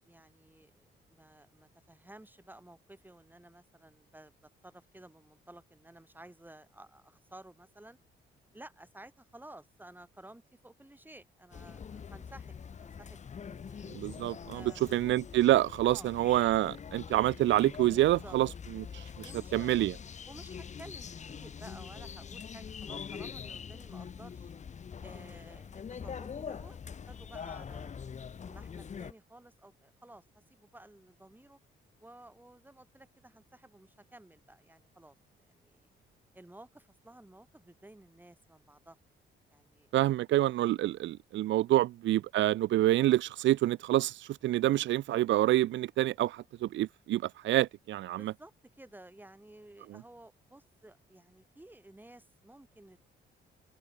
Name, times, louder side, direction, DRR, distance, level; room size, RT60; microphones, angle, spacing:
voice 1, 0.0-8.0 8.5-14.0 14.5-15.1 15.9-16.1 18.0-18.4 19.2-19.7 20.3-24.5 25.0-28.0 28.4-31.6 32.0-35.2 35.5-35.9 36.3-39.0 39.5-39.9 41.7-41.8 48.1-53.0, right 1 dB, 10° right, 7.2 m, -54 dB
sound 1, 11.5-29.1, left 7 dB, 35° left, 0.9 m, -44 dB
voice 2, 13.9-14.6 14.9-18.5 18.8-19.0 19.5-19.9 39.9-48.3, right 14 dB, 70° right, 0.5 m, -27 dB
cardioid pair, 90°, 20 cm